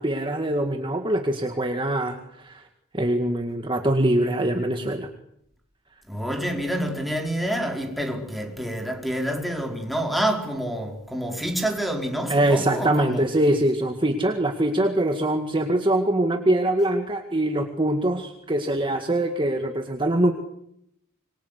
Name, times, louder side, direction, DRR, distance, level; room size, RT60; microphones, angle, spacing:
voice 1, 0.0-2.6 2.9-5.1 12.3-20.3, right 1 dB, 25° right, 2.0 m, -23 dB
voice 2, 6.1-13.2, right 1 dB, ahead, 4.6 m, -28 dB
27.0 x 24.0 x 8.4 m
head